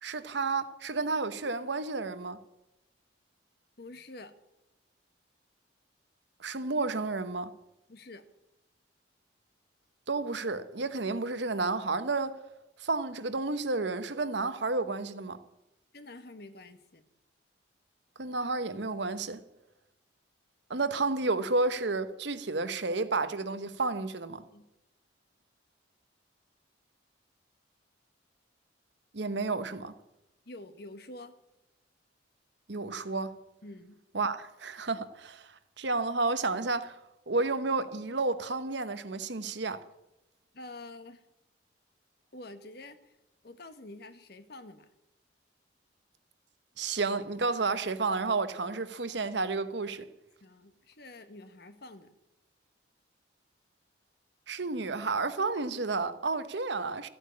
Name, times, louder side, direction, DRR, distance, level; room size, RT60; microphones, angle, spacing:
voice 1, 0.0-2.4 6.4-7.5 10.1-12.4 12.8-15.4 18.2-19.4 20.7-24.4 29.1-29.9 32.7-33.4 34.1-37.0 37.3-39.8 46.8-50.1 54.5-57.1, right 3 dB, 65° right, 1.0 m, -31 dB
voice 2, 3.8-4.4 7.9-8.2 15.9-17.0 24.5-24.7 30.4-31.3 33.6-34.0 40.5-41.2 42.3-43.2 43.4-44.9 50.4-52.1, left 2 dB, 55° left, 1.3 m, -47 dB
14.0 x 9.0 x 8.6 m
head